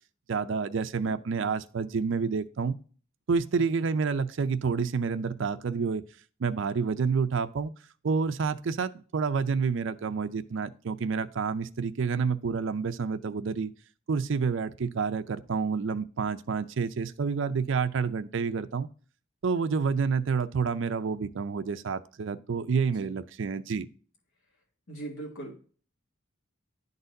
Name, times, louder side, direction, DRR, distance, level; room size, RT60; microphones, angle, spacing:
voice 1, 0.3-2.8 3.3-6.0 6.4-7.7 8.0-13.7 14.1-18.9 19.4-23.9, right 5 dB, 60° right, 11 dB, 0.4 m, -29 dB
voice 2, 24.9-25.6, right 2 dB, 70° left, -2 dB, 1.8 m, -40 dB
11.0 x 4.0 x 2.6 m, 0.41 s
head